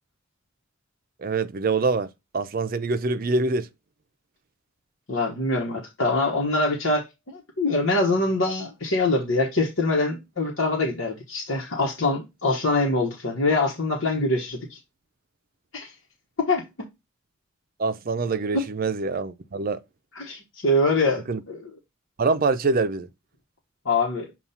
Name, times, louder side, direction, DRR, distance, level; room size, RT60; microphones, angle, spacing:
voice 1, 1.2-2.1 2.3-3.7 17.8-19.8 21.3-21.4 22.2-23.1, right 3 dB, 45° right, 0.5 m, -24 dB
voice 2, 5.1-14.8 15.7-15.9 16.4-16.7 18.5-18.6 20.2-21.6 23.8-24.3, left 2 dB, 70° left, 1.1 m, -24 dB
7.0 x 2.4 x 5.5 m
head